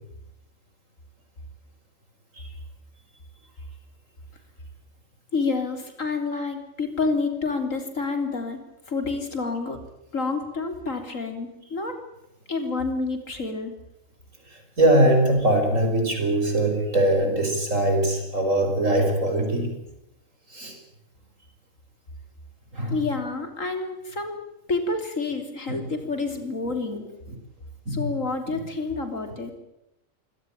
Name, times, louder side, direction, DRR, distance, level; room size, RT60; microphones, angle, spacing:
voice 1, 5.3-8.6 8.9-9.8 10.1-12.0 12.5-13.7 22.9-24.4 24.7-27.0 27.9-29.5, left 3 dB, 75° left, 7 dB, 3.9 m, -28 dB
voice 2, 14.8-19.7 20.5-20.8 22.7-23.0 25.7-25.8 26.9-27.0 27.9-28.1 28.5-28.6 29.2-29.3, right 1 dB, 70° right, 4 dB, 6.3 m, -22 dB
25.0 x 18.0 x 9.0 m, 0.85 s
omnidirectional pair, 1.4 m